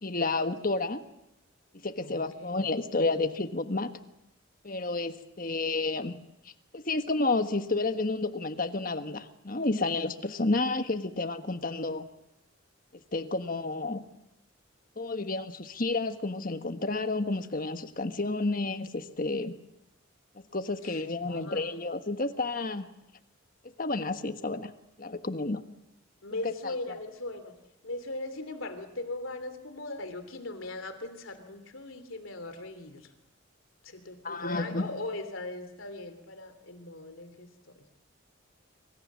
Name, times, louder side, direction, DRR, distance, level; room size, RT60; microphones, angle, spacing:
voice 1, 0.0-1.0 1.8-3.9 4.6-6.2 6.7-12.1 13.1-14.0 15.0-19.6 20.5-22.8 23.8-24.7 25.0-25.6 26.4-26.7 34.2-34.9, left 3 dB, 45° left, 9 dB, 1.4 m, -30 dB
voice 2, 2.0-2.7 20.8-22.0 26.2-27.6 27.8-33.1 33.8-37.9, left 2 dB, 90° left, 9 dB, 3.0 m, -39 dB
25.5 x 24.5 x 7.4 m, 0.87 s
head